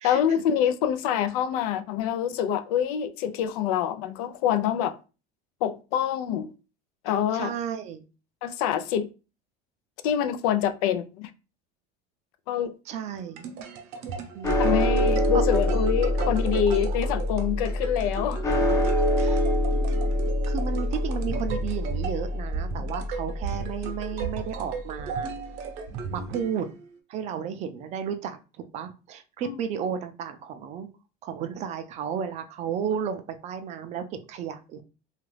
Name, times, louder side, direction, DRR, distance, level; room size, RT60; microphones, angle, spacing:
voice 1, 0.0-4.9 5.6-6.5 7.0-7.5 8.4-9.1 10.0-11.3 12.5-12.7 14.6-18.5 29.4-29.5, left 9 dB, 80° left, 0.4 m, -26 dB
voice 2, 7.3-8.0 12.9-13.5 14.3-14.7 15.3-15.4 19.2-19.4 20.5-25.3 26.1-26.7 27.1-30.9 31.2-34.8, right 8 dB, 40° right, 0.4 m, -33 dB
sound 1, 13.1-26.9, right 6 dB, 65° right, 0.7 m, -36 dB
sound 2, 14.4-24.9, left 1 dB, 15° left, 0.5 m, -26 dB
2.9 x 2.4 x 3.1 m
cardioid pair, 145°, 18 cm